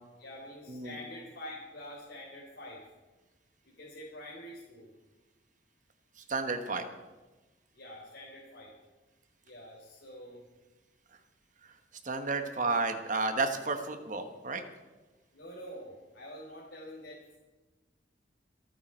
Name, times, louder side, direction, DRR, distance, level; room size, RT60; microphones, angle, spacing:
voice 1, 0.2-2.8 3.8-4.9 7.8-8.7 9.4-10.4 15.3-17.2, left 1 dB, 70° left, -4 dB, 3.5 m, -46 dB
voice 2, 6.3-6.9 12.0-14.6, right 3 dB, 45° right, 8 dB, 1.2 m, -31 dB
27.5 x 9.3 x 4.5 m, 1.2 s
head